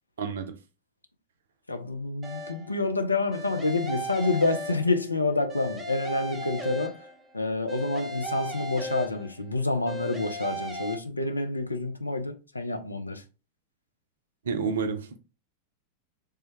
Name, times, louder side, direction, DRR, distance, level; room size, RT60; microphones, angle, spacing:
voice 1, 0.2-0.6 14.4-15.2, right 5 dB, 65° right, 0.4 m, -30 dB
voice 2, 1.7-7.1 7.3-13.2, left 3 dB, 80° left, 0.4 m, -28 dB
sound 1, 2.2-2.8 3.3-5.2 5.5-7.3 7.7-9.5 9.9-10.9, equal, 10° right, 0.7 m, -36 dB
3.3 x 2.1 x 2.9 m
figure-of-eight pair, 90°, 0 cm